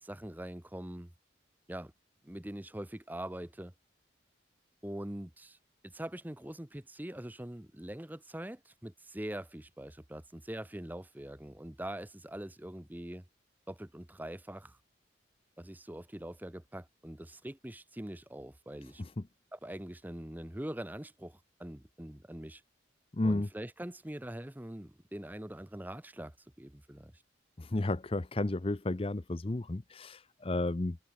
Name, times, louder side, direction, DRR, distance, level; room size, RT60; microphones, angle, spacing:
voice 1, 0.0-1.1 1.7-1.9 2.2-3.7 4.8-5.6 5.8-13.2 13.7-14.8 15.6-19.0 19.5-22.6 23.2-27.1, right 1 dB, 10° right, 0.7 m, -43 dB
voice 2, 23.1-23.5 27.6-31.0, left 2 dB, 30° left, 0.6 m, -32 dB
head